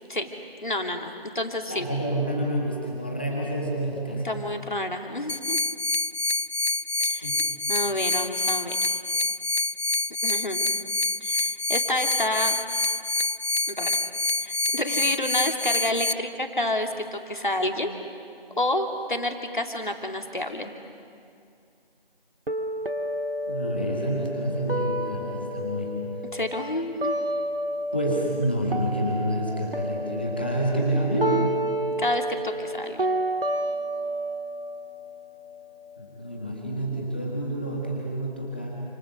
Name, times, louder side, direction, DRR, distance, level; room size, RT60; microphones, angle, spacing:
voice 1, 0.6-1.9 4.2-5.6 7.0-7.3 7.7-8.8 10.2-10.7 11.2-12.5 13.7-14.0 14.4-17.9 18.6-20.7 26.3-27.2 32.0-33.1, left 1 dB, 55° left, 4 dB, 2.8 m, -29 dB
voice 2, 1.7-4.3 7.2-7.4 23.5-26.0 27.9-31.4 36.0-38.8, right 1 dB, 10° left, -3 dB, 1.7 m, -28 dB
sound 1, 5.3-16.1, left 2 dB, 90° left, 0.8 m, -26 dB
sound 2, 22.5-28.4 28.7-36.5, right 1 dB, 70° right, 1.9 m, -31 dB
29.0 x 27.5 x 6.5 m, 2.4 s
figure-of-eight pair, 170°, 30 cm